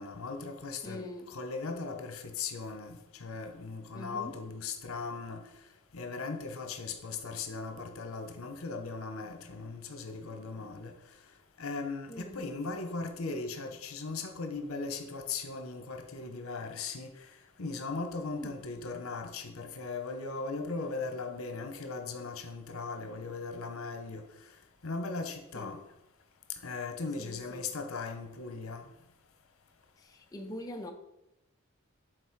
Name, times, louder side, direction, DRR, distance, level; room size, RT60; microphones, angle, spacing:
voice 1, 0.0-1.0 1.3-5.4 5.9-10.9 11.6-17.1 17.6-24.2 24.8-25.8 26.6-28.8, left 4 dB, 85° left, 7 dB, 0.9 m, -38 dB
voice 2, 0.8-1.3 3.9-4.4 12.1-12.5 18.3-18.6 25.5-25.8 27.2-27.7 30.0-30.9, left 1 dB, 15° left, 2 dB, 0.5 m, -43 dB
7.9 x 3.9 x 4.6 m, 0.86 s
head